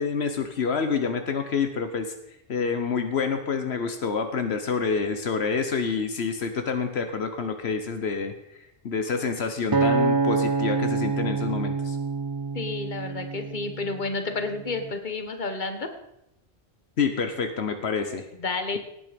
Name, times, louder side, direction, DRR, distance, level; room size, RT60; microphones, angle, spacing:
voice 1, 0.0-2.1 2.5-8.3 8.8-12.0 17.0-18.2, left 5 dB, 80° left, 7 dB, 1.3 m, -27 dB
Acoustic guitar, 9.7-14.1 14.7-14.9, right 4 dB, 25° right, 0.6 m, -26 dB
voice 2, 12.5-15.9 18.4-18.8, left 3 dB, 45° left, 6 dB, 1.6 m, -30 dB
18.0 x 9.3 x 5.2 m, 0.85 s
omnidirectional pair, 1.1 m